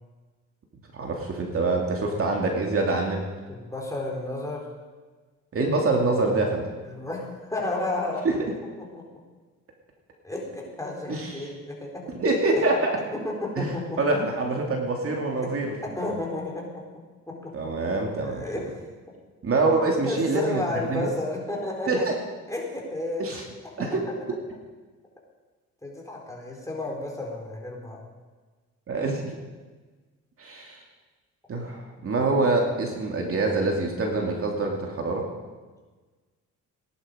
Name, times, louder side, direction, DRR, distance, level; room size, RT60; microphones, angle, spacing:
voice 1, 0.9-3.2 5.5-6.6 8.2-8.4 11.1-11.5 12.2-13.0 13.6-13.7 14.0-16.1 17.5-18.5 19.4-21.1 21.9-22.1 23.2-23.4 23.8-24.0 28.9-29.2 30.4-30.8 31.5-35.2, right 3 dB, 50° right, 1 dB, 2.6 m, -25 dB
voice 2, 3.5-4.6 6.8-8.4 8.8-9.1 10.2-12.0 12.6-12.7 13.1-14.0 15.4-15.5 15.8-16.8 17.3-17.7 18.2-18.8 20.0-22.1 22.5-23.3 23.8-23.9 25.8-28.0, left 2 dB, 10° left, -2 dB, 4.4 m, -32 dB
18.5 x 11.0 x 5.2 m, 1.3 s
cardioid pair, 90°, 30 cm